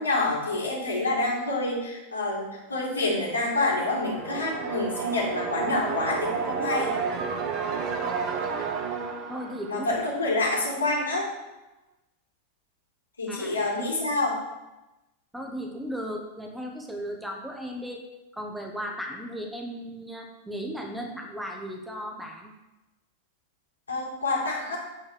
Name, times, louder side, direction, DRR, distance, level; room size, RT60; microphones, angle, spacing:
voice 1, 0.0-6.9 9.7-11.3 13.2-14.4 23.9-24.8, left 2 dB, 75° left, -5 dB, 2.7 m, -27 dB
sound 1, 2.9-10.7, right 6 dB, 40° right, 1.0 m, -32 dB
voice 2, 9.3-9.9 13.3-13.5 15.3-18.0 18.3-22.5, equal, 5° right, 2 dB, 1.2 m, -36 dB
8.7 x 4.2 x 6.8 m, 1.0 s
figure-of-eight pair, 90°, 0 cm